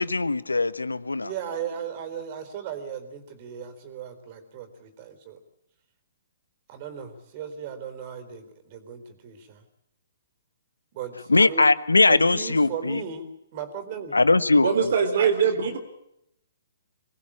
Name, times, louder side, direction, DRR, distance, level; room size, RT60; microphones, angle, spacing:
voice 1, 0.0-1.3 11.3-13.0 14.1-14.7, left 3 dB, 90° left, 17 dB, 1.1 m, -20 dB
voice 2, 1.2-5.4 6.7-9.6 10.9-11.7 12.1-14.2, right 7 dB, 40° right, 11 dB, 4.2 m, -37 dB
voice 3, 14.6-15.8, right 6 dB, 60° right, 5 dB, 3.5 m, -22 dB
24.5 x 19.5 x 8.8 m, 0.80 s
figure-of-eight pair, 130°, 0 cm